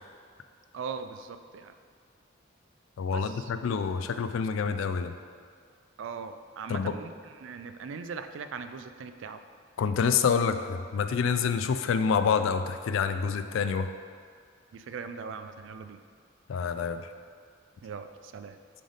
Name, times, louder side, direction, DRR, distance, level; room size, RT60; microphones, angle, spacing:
voice 1, 0.7-1.7 3.1-3.5 6.0-9.4 14.7-16.0 17.8-18.6, right 5 dB, 70° right, 9 dB, 0.3 m, -40 dB
voice 2, 3.0-5.1 6.7-6.9 9.8-13.9 16.5-17.1, left 6 dB, 85° left, 9 dB, 0.3 m, -27 dB
7.4 x 3.4 x 4.0 m, 2.1 s
head